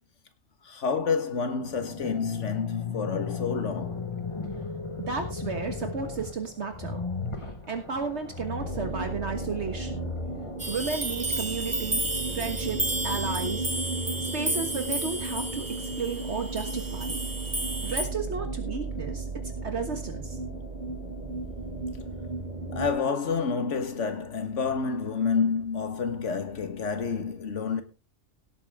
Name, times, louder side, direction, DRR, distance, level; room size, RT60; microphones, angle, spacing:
voice 1, 0.6-4.1 22.7-27.8, left 5 dB, 70° left, 1.7 m, -29 dB
sound 1, 1.6-11.6, left 4 dB, 25° left, 1.2 m, -36 dB
voice 2, 5.0-7.0 7.4-10.1 10.7-13.7 14.2-17.2 17.8-19.3 19.6-20.4, right 4 dB, 60° right, 1.7 m, -33 dB
sound 2, 8.6-22.9, right 3 dB, 35° right, 3.8 m, -35 dB
sound 3, 10.6-18.1, right 1 dB, 15° right, 1.4 m, -32 dB
17.0 x 8.9 x 3.5 m
omnidirectional pair, 1.3 m